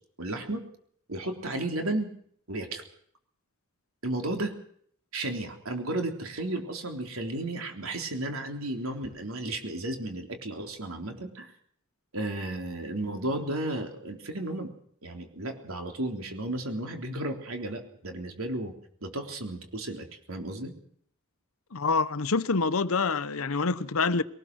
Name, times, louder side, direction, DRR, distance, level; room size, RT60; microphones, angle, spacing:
voice 1, 0.2-0.7 1.1-2.1 2.5-2.8 4.0-4.6 5.1-11.5 12.1-14.7 15.0-18.7 19.0-20.7, right 1 dB, 70° right, 3.7 m, -33 dB
voice 2, 21.7-24.2, left 4 dB, 70° left, 0.9 m, -26 dB
22.5 x 19.0 x 6.3 m
head